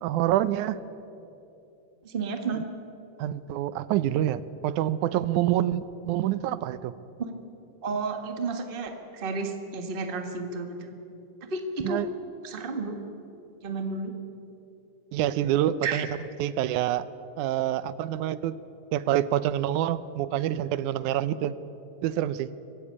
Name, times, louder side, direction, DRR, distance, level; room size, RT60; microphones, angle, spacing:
voice 1, 0.0-0.8 2.5-2.6 3.2-6.9 11.8-12.1 15.1-16.1 16.4-17.1 17.4-18.6 18.9-21.6 22.0-22.5, right 12 dB, 85° right, 15 dB, 2.2 m, -26 dB
voice 2, 2.0-2.6 7.8-10.9 11.5-12.0 12.4-13.0 13.6-14.1 15.8-16.1, right 4 dB, 25° right, 5 dB, 1.2 m, -32 dB
25.0 x 15.5 x 8.6 m, 2.8 s
omnidirectional pair, 3.4 m